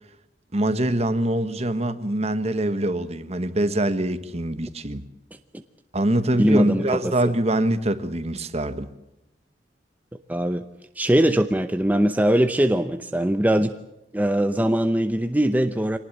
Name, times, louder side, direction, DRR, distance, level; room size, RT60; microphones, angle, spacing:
voice 1, 0.5-5.0 5.9-8.9, right 1 dB, 35° right, 1.4 m, -24 dB
voice 2, 6.4-7.3 10.3-10.6 11.0-13.7 14.1-16.0, right 1 dB, 10° right, 0.7 m, -21 dB
25.0 x 19.0 x 7.4 m
head